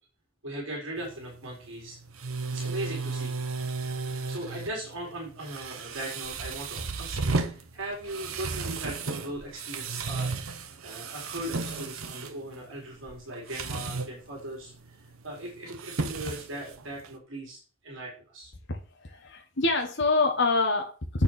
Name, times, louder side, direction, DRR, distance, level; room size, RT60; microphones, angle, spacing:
voice 1, 0.4-2.0 2.5-3.4 4.3-14.9 15.2-18.5, right 1 dB, 65° right, 3.0 m, -39 dB
sound 1, 1.0-17.2, right 4 dB, 85° right, 1.0 m, -35 dB
voice 2, 18.7-21.2, left 3 dB, 60° left, 1.3 m, -26 dB
8.8 x 6.9 x 4.3 m
head